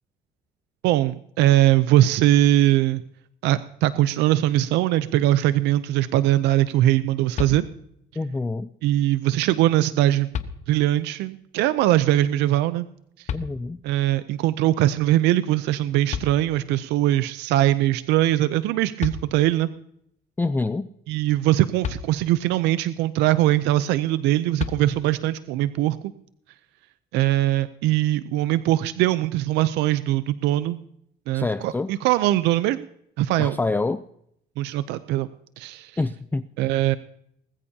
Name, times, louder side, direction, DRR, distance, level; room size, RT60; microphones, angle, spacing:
voice 1, 0.8-3.0 3.4-7.7 8.8-10.3 10.7-12.9 13.2-13.3 13.8-19.7 21.1-26.1 27.1-30.8 31.3-32.8 33.2-33.6 34.6-35.3 35.6-35.9 36.6-37.0, right 14 dB, 90° right, 14 dB, 0.6 m, -21 dB
sound 1, 7.3-8.1 9.6-9.7 10.3-11.1 13.3-14.0 15.8-15.9 16.1-16.9 18.6-18.7 19.0-19.8 21.8-22.6 24.6-25.4, left 7 dB, 45° left, 1.1 m, -34 dB
voice 2, 8.2-8.7 13.3-13.8 20.4-20.9 31.3-31.9 33.4-34.0 36.0-36.5, left 3 dB, 10° left, 12 dB, 0.4 m, -26 dB
20.0 x 14.0 x 2.8 m, 0.73 s
cardioid pair, 110°, 17 cm